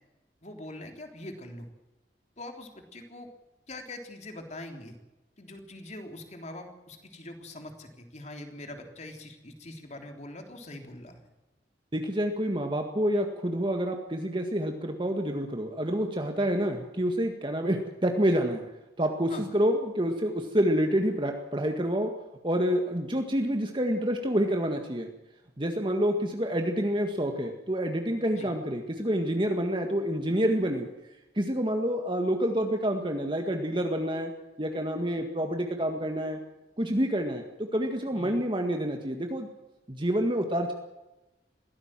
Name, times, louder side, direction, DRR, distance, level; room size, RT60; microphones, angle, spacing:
voice 1, 0.4-1.7 2.4-3.3 3.7-5.0 5.4-11.2 19.3-19.5 28.3-28.5 38.1-38.4, left 1 dB, 40° left, 4 dB, 3.5 m, -43 dB
voice 2, 11.9-18.6 19.0-22.1 22.4-25.1 25.6-30.9 31.4-34.3 34.6-36.4 36.8-39.5 39.9-40.7, equal, 25° right, 4 dB, 1.8 m, -28 dB
22.5 x 16.5 x 7.6 m, 1.0 s
head